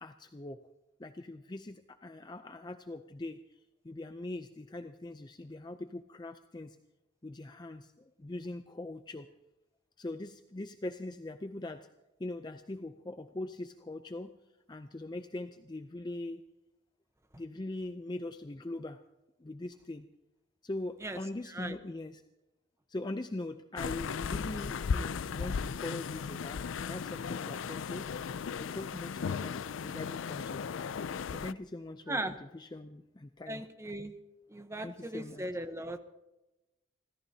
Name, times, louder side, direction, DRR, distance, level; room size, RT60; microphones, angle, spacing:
voice 1, 0.0-0.6 1.0-3.6 3.8-6.8 7.2-7.9 8.2-9.3 10.0-11.9 12.2-14.3 14.7-16.4 17.3-19.0 19.4-20.1 20.6-22.2 22.9-28.1 28.6-30.6 31.3-33.6 34.8-35.5, left 2 dB, 20° left, 8 dB, 0.5 m, -41 dB
sound 1, 23.8-31.5, left 6 dB, 85° left, 0.4 m, -36 dB
voice 2, 33.5-34.2 34.5-36.0, right 1 dB, 15° right, 9 dB, 0.9 m, -37 dB
30.0 x 14.0 x 2.8 m, 0.99 s
head